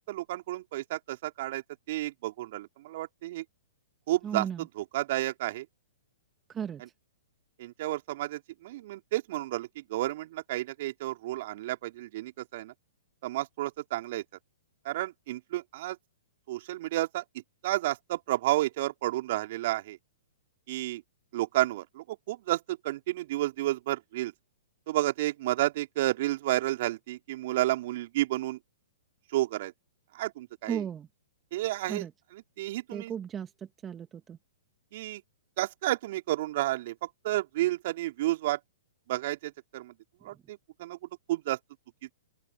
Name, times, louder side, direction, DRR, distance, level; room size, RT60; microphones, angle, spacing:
voice 1, 0.1-3.4 4.1-4.5 4.8-5.7 7.6-12.7 13.2-14.2 14.8-16.0 16.5-17.2 17.6-20.0 20.7-21.0 21.3-24.3 24.9-28.6 29.3-29.7 30.1-30.8 31.5-32.1 32.3-33.1 34.9-35.2 35.6-38.6 39.1-39.9 40.2-41.0 41.3-41.6, right 16 dB, 50° right, 4.1 m, -31 dB
voice 2, 4.2-4.7 6.5-6.8 30.7-31.1 31.9-32.1 32.9-34.4, right 8 dB, 20° right, 1.5 m, -35 dB
open air
hypercardioid pair, 120°, 0 cm